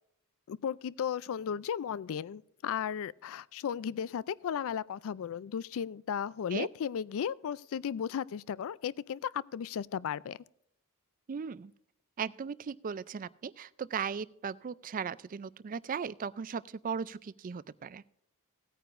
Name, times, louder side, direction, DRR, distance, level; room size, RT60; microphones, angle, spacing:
voice 1, 0.5-10.4, left 8 dB, 65° left, 0.3 m, -35 dB
voice 2, 11.3-11.7 12.2-18.0, right 6 dB, 40° right, 0.4 m, -37 dB
17.5 x 9.2 x 2.5 m
head